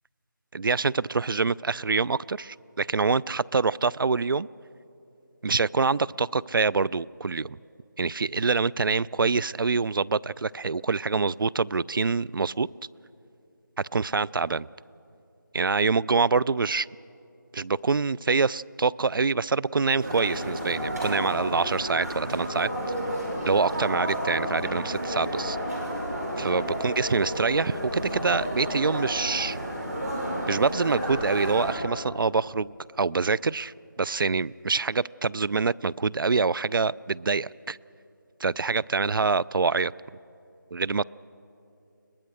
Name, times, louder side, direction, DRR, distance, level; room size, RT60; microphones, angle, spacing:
voice 1, 0.5-4.5 5.4-7.6 8.0-12.7 13.8-14.7 15.5-16.9 17.5-22.7 23.4-25.6 26.4-29.6 30.5-37.8 38.4-39.9 40.7-41.0, right 4 dB, 85° right, 22 dB, 0.4 m, -25 dB
sound 1, 20.0-31.7, equal, 50° right, 6.2 m, -31 dB
23.0 x 19.5 x 6.4 m, 2.8 s
figure-of-eight pair, 175°, 11 cm